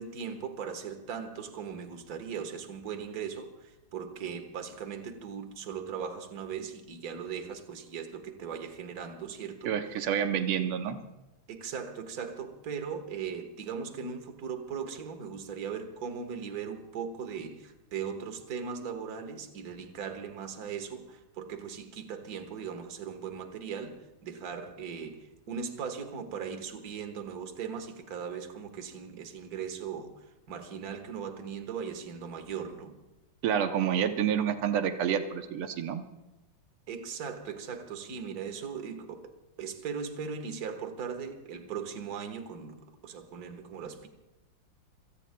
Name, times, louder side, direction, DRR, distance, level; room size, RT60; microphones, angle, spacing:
voice 1, 0.0-9.8 11.5-33.0 36.9-39.3 39.6-44.1, right 6 dB, 50° right, 7 dB, 1.7 m, -39 dB
voice 2, 9.7-11.0 33.4-36.0, right 8 dB, 90° right, 7 dB, 1.9 m, -28 dB
27.5 x 17.5 x 2.2 m, 0.99 s
omnidirectional pair, 2.4 m